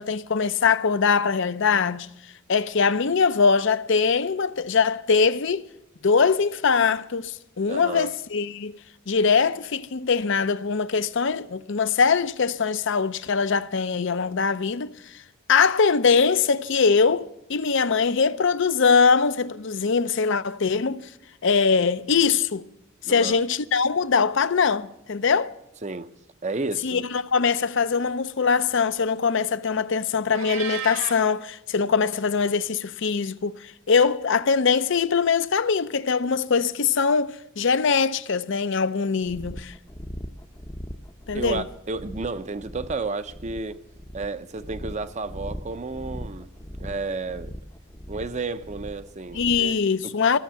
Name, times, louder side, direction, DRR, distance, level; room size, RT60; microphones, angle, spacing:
voice 1, 0.0-2.1 2.5-5.7 6.0-8.8 9.1-15.0 15.5-21.1 21.4-22.7 23.0-25.6 26.8-39.7 41.3-41.7 49.3-50.4, left 5 dB, 60° left, 0.6 m, -22 dB
voice 2, 7.7-8.1 23.0-23.4 25.8-26.1 26.4-27.1 41.3-43.8 44.1-46.5 46.8-47.5 48.1-49.7 50.0-50.2, right 3 dB, 35° right, 0.6 m, -32 dB
Meow, 30.3-31.2, right 5 dB, 75° right, 1.9 m, -33 dB
sound 1, 39.2-49.8, equal, 15° left, 0.7 m, -39 dB
15.0 x 7.2 x 10.0 m
head